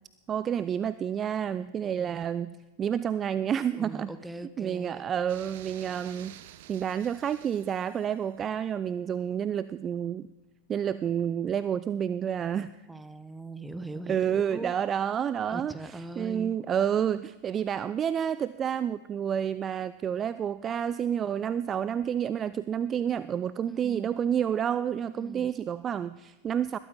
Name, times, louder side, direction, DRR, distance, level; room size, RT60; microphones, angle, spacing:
voice 1, 0.3-4.1 4.6-6.3 6.7-10.3 10.7-12.7 14.1-26.8, right 8 dB, 25° right, 16 dB, 0.4 m, -29 dB
voice 2, 1.6-2.2 3.8-5.1 8.4-8.5 12.9-14.7 15.5-16.6 23.7-24.2 25.1-25.5, right 2 dB, 5° right, 12 dB, 0.9 m, -41 dB
sound 1, 5.3-8.4, right 12 dB, 50° right, 0.8 m, -50 dB
20.5 x 13.0 x 3.8 m, 1.1 s
figure-of-eight pair, 90°, 0 cm